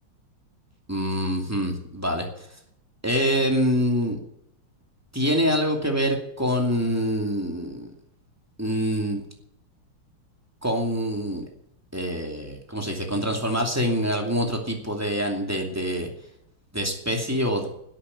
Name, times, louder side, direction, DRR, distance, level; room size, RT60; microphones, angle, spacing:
voice 1, 0.9-2.5 3.0-4.2 5.1-7.9 8.6-9.2 10.6-11.4 11.9-16.1 16.7-17.7, equal, 5° right, 2 dB, 2.4 m, -25 dB
12.0 x 8.5 x 9.9 m, 0.75 s
omnidirectional pair, 2.4 m